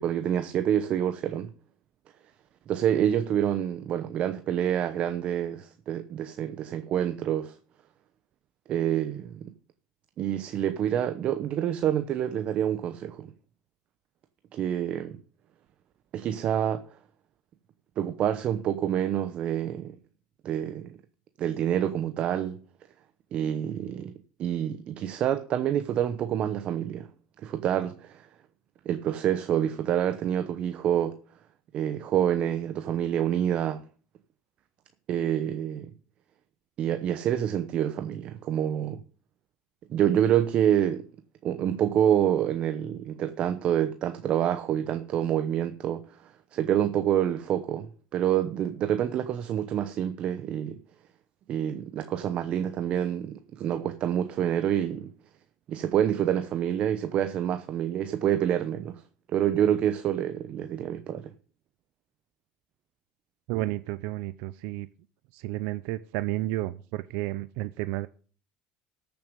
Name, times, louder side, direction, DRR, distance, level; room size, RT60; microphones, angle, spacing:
voice 1, 0.0-1.5 2.7-7.6 8.7-9.5 10.2-13.3 14.5-15.2 16.1-16.8 18.0-19.9 20.4-21.0 21.4-22.6 23.3-24.1 24.4-27.1 27.4-28.3 28.8-31.2 31.7-33.8 35.1-35.9 36.8-39.0 39.9-41.1 41.4-50.8 51.5-55.1 55.7-59.0 59.3-61.3, right 10 dB, 45° right, 0.8 m, -27 dB
voice 2, 63.5-64.9 65.3-68.1, right 16 dB, 70° right, 0.5 m, -31 dB
14.0 x 6.9 x 5.2 m
cardioid pair, 135°, 3 cm